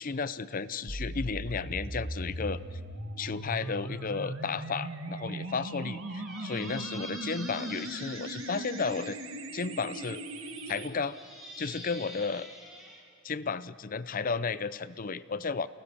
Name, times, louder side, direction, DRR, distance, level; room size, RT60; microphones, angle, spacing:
voice 1, 0.0-2.8 3.2-9.2 9.5-10.2 10.7-11.2 11.6-12.5 13.2-15.7, left 5 dB, 45° left, 16 dB, 0.6 m, -33 dB
sound 1, 0.9-10.9, right 1 dB, 80° right, 1.8 m, -38 dB
Squeak, 6.1-9.1 10.0-13.0, equal, ahead, 3.8 m, -47 dB
29.0 x 19.5 x 7.0 m, 2.1 s
head